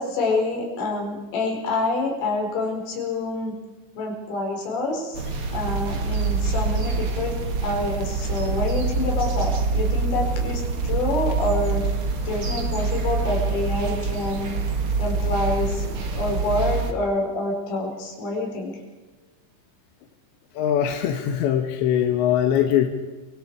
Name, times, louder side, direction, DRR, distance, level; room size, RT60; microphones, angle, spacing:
voice 1, 0.0-3.5 4.0-5.2 5.5-7.4 7.6-11.8 12.3-14.5 15.0-15.9 16.2-18.7, left 2 dB, 90° left, 1 dB, 7.5 m, -27 dB
sound 1, 5.1-16.9, right 4 dB, 45° right, 1.7 m, -25 dB
voice 2, 20.6-22.9, left 10 dB, 75° left, 5 dB, 3.4 m, -21 dB
28.5 x 25.0 x 4.9 m, 1.3 s
omnidirectional pair, 5.6 m